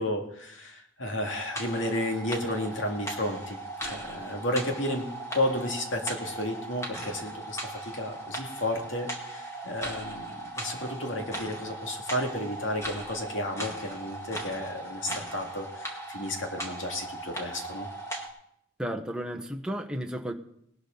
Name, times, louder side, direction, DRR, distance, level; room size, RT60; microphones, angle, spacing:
voice 1, 0.0-5.1 5.3-17.9, left 1 dB, 80° left, 2 dB, 2.4 m, -32 dB
sound 1, 1.2-18.3, right 1 dB, 15° left, 1.9 m, -38 dB
voice 2, 18.8-20.3, equal, 5° right, 3 dB, 1.0 m, -33 dB
18.5 x 12.5 x 3.9 m, 0.74 s
head